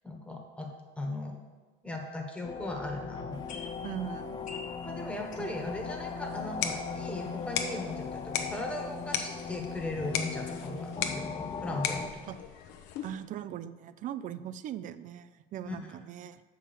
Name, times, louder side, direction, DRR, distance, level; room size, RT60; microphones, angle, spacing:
voice 1, 0.0-1.4 1.8-3.7 4.8-12.3 15.6-15.8, left 1 dB, 5° left, 1 dB, 1.3 m, -38 dB
sound 1, 2.4-12.1, left 5 dB, 20° left, 0.4 m, -39 dB
sound 2, 3.3-10.9, left 4 dB, 35° left, 1.2 m, -52 dB
voice 2, 3.8-4.4 12.3-12.4 13.0-16.4, right 10 dB, 40° right, 14 dB, 0.4 m, -39 dB
sound 3, 6.3-13.3, left 8 dB, 65° left, 0.9 m, -38 dB
6.6 x 5.5 x 7.0 m, 1.3 s
cardioid pair, 140°, 21 cm